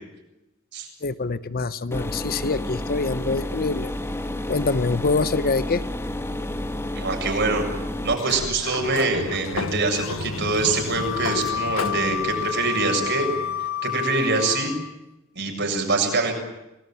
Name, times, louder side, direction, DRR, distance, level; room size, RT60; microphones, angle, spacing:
voice 1, 1.0-3.9 4.5-5.8, left 3 dB, 45° left, 15 dB, 0.9 m, -25 dB
sound 1, 1.9-8.1, left 1 dB, 10° left, 1.4 m, -30 dB
voice 2, 6.9-7.6 8.0-13.3 13.8-14.7 15.3-16.3, right 3 dB, 60° right, 3 dB, 7.5 m, -24 dB
Sliding door, 8.1-13.8, left 3 dB, 70° left, 1.1 m, -33 dB
Wind instrument woodwind instrument, 10.9-15.0, left 9 dB, 90° left, 2.3 m, -29 dB
28.5 x 20.0 x 9.2 m, 0.95 s
head